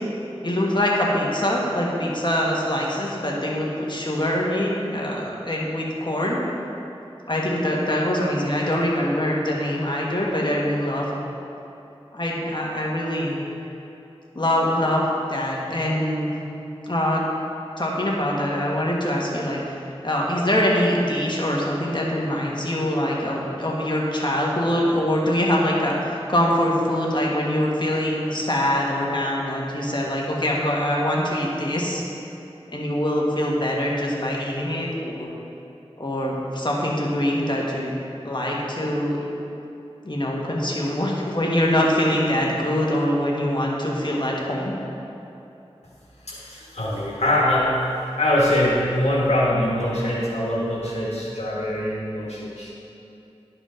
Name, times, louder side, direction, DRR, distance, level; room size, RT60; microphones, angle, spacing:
voice 1, 0.4-6.4 7.3-11.2 12.1-13.4 14.3-16.3 16.9-17.2 17.8-19.8 20.0-32.0 32.7-35.3 36.0-37.9 38.2-39.2 40.0-44.7, left 1 dB, 45° left, -3 dB, 1.4 m, -24 dB
voice 2, 46.2-47.9 48.2-52.7, left 1 dB, 85° left, -6 dB, 1.4 m, -23 dB
11.0 x 5.0 x 3.8 m, 2.9 s
wide cardioid pair, 40°, 11 cm